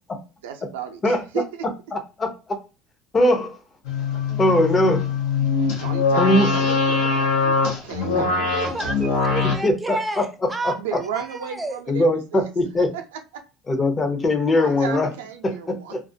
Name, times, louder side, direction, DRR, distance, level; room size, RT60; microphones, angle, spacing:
voice 1, 0.4-1.4 5.8-9.2 10.8-12.5 14.5-15.9, right 8 dB, 90° right, 0.5 m, -34 dB
voice 2, 1.9-2.6 3.1-3.6 4.4-5.1 6.2-6.6 8.1-8.3 9.6-10.0 10.6-10.7 11.9-12.9 13.7-15.1 15.4-16.0, left 1 dB, 30° left, 0.6 m, -20 dB
sound 1, 3.9-9.6, left 4 dB, 80° left, 0.7 m, -22 dB
voice 3, 8.5-10.8 11.1-11.8, right 2 dB, 15° right, 0.5 m, -30 dB
2.3 x 2.1 x 2.6 m
supercardioid pair, 90°, 0 cm